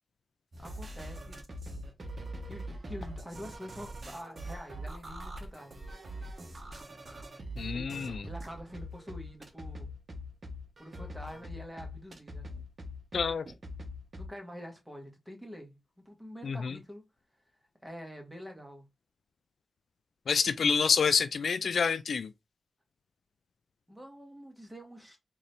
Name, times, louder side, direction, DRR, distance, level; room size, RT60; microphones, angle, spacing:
sound 1, 0.5-14.3, equal, 40° right, 1.0 m, -42 dB
voice 1, 0.6-1.4 2.4-5.8 7.7-7.9 8.3-9.9 10.8-12.5 14.2-15.8 16.0-17.0 17.8-18.9 23.9-25.2, equal, 5° right, 1.5 m, -46 dB
voice 2, 7.6-8.3 13.1-13.5 16.4-16.8 20.3-22.3, left 5 dB, 70° left, 0.3 m, -28 dB
3.8 x 2.7 x 3.3 m
cardioid pair, 75°, 0 cm